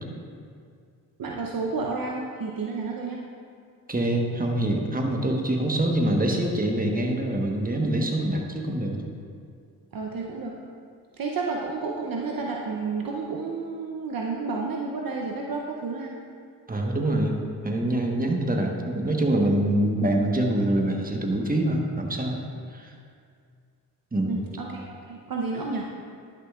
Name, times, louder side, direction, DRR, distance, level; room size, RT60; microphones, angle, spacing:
voice 1, 1.2-3.2 9.9-10.6 11.2-16.1 24.3-25.9, right 4 dB, 50° right, -1 dB, 0.8 m, -31 dB
voice 2, 3.9-9.0 16.7-22.4 22.7-22.9 24.1-24.4, right 1 dB, 20° right, 1 dB, 1.3 m, -25 dB
11.0 x 6.7 x 2.4 m, 2.2 s
supercardioid pair, 45°, 45 cm